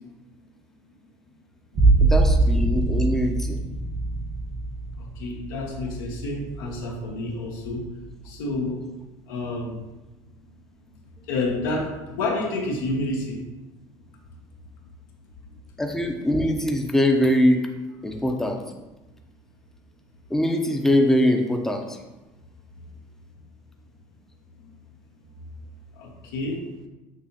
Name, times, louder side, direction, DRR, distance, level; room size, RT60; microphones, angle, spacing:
sound 1, 1.7-7.2 7.7-8.3, right 2 dB, 50° right, 1.3 m, -23 dB
voice 1, 2.1-3.6 15.8-17.6 18.0-18.6 20.3-22.0, left 1 dB, 5° left, 3 dB, 0.6 m, -22 dB
voice 2, 5.0-7.8 8.2-8.8 9.3-9.8 11.3-13.4 18.1-18.2 25.9-26.6, left 2 dB, 85° left, 0 dB, 0.8 m, -29 dB
6.3 x 2.7 x 2.8 m, 1.1 s
supercardioid pair, 85°, 11 cm